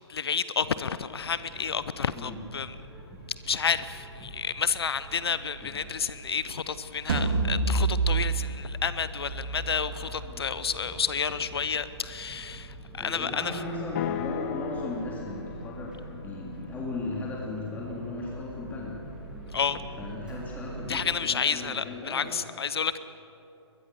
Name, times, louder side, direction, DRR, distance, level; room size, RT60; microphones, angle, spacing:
voice 1, 0.1-2.7 3.4-13.6 19.5-19.8 20.9-23.0, left 6 dB, 60° left, 14 dB, 0.9 m, -30 dB
sound 1, 1.1-21.0, right 2 dB, 5° right, 3.5 m, -45 dB
sound 2, 7.1-12.2, right 3 dB, 50° right, 2.8 m, -30 dB
voice 2, 13.0-19.0 20.0-22.3, left 2 dB, 10° left, -4 dB, 3.3 m, -36 dB
sound 3, 13.9-18.1, left 7 dB, 35° left, 1.2 m, -37 dB
22.0 x 21.5 x 7.0 m, 2.8 s
figure-of-eight pair, 130°, 15 cm